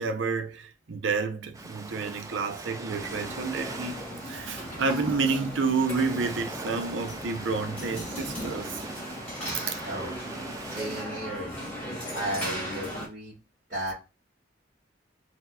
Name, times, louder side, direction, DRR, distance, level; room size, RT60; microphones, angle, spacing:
voice 1, 0.0-8.9 9.5-9.7, right 4 dB, 75° right, 0.6 m, -30 dB
Ocean, 1.5-11.0, right 2 dB, 15° right, 0.3 m, -42 dB
sound 1, 2.9-13.1, equal, 5° left, 1.8 m, -37 dB
voice 2, 10.6-11.6 12.1-13.4 13.7-13.9, right 1 dB, 45° right, 1.9 m, -34 dB
4.0 x 2.9 x 2.3 m
head